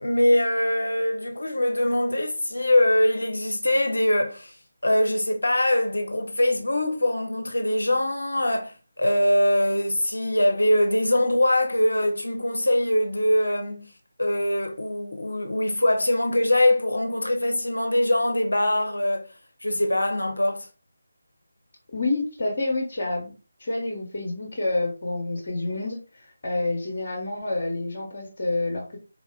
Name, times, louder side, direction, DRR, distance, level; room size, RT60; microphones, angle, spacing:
voice 1, 0.0-4.5 4.8-13.9 14.2-19.2 19.6-20.7, left 1 dB, 70° left, 0.7 m, -23 dB
voice 2, 21.9-23.3 23.6-26.0 26.4-29.0, left 2 dB, 40° left, 1.0 m, -28 dB
3.6 x 2.4 x 2.3 m
figure-of-eight pair, 155°, 0 cm